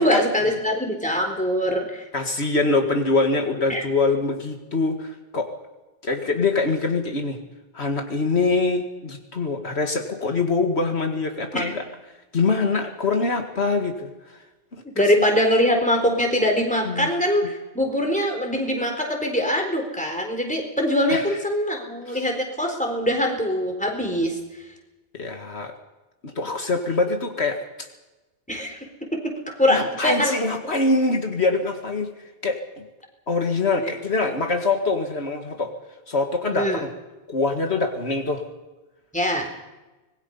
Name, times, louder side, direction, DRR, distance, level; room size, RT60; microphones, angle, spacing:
voice 1, 0.0-2.0 3.7-3.8 11.5-11.7 15.0-24.4 28.5-28.8 29.1-30.3 33.8-33.9 36.5-36.8 39.1-39.5, left 1 dB, 5° left, 2 dB, 4.0 m, -23 dB
voice 2, 2.1-5.5 6.0-7.4 7.7-11.8 12.3-14.4 14.7-15.0 16.8-17.1 17.4-17.5 21.1-21.3 22.1-22.2 25.1-25.7 26.2-27.9 29.7-32.1 32.4-32.8 33.3-35.7 36.1-36.9 37.3-38.4, left 3 dB, 70° left, 4 dB, 2.1 m, -24 dB
25.0 x 21.0 x 5.5 m, 1.1 s
omnidirectional pair, 1.2 m